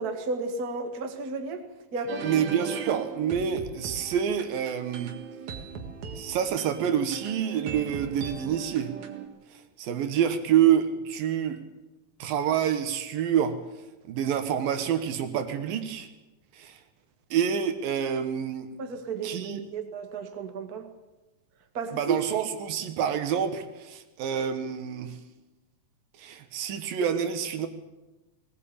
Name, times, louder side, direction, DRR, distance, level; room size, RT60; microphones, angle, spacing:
voice 1, 0.0-2.4 18.8-20.9 21.7-22.2, right 4 dB, 35° right, 6 dB, 1.8 m, -33 dB
sound 1, 2.1-9.3, right 6 dB, 60° right, 3.1 m, -39 dB
voice 2, 2.2-5.1 6.2-8.9 9.8-11.6 12.2-13.6 14.1-16.1 16.6-16.8 17.3-18.7 19.2-19.6 21.9-25.2 26.2-27.7, right 9 dB, 75° right, 9 dB, 3.1 m, -27 dB
20.0 x 18.0 x 8.7 m, 1.1 s
omnidirectional pair, 4.1 m